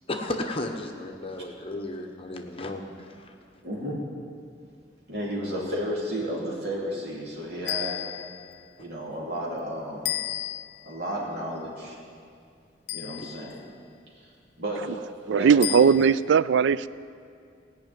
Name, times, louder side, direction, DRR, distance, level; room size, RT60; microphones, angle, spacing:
voice 1, 0.1-3.3 13.2-13.3, left 2 dB, 30° left, 1.0 m, -34 dB
voice 2, 3.6-4.0 5.1-8.0 8.8-10.1 10.8-12.0 12.9-13.6 14.2-14.3 14.6-15.0 15.3-15.5, equal, 65° right, 2.8 m, -32 dB
sound 1, 7.7-8.5 10.1-10.9 12.9-13.6 15.6-16.3, left 14 dB, 65° left, 0.4 m, -33 dB
voice 3, 15.3-16.9, right 6 dB, 80° right, 0.3 m, -19 dB
16.5 x 5.9 x 9.2 m
head